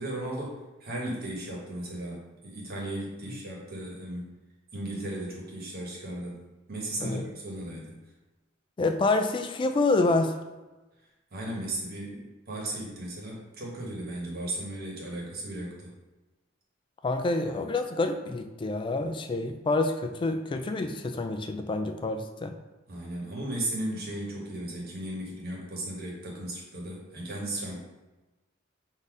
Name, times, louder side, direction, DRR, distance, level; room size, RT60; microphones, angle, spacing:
voice 1, 0.0-4.3 4.7-6.4 6.7-8.0 11.3-15.9 22.9-27.8, right 1 dB, 50° right, -2 dB, 1.2 m, -36 dB
voice 2, 8.8-10.4 17.0-22.5, left 2 dB, 25° left, 6 dB, 0.3 m, -27 dB
3.9 x 2.7 x 4.7 m, 1.1 s
head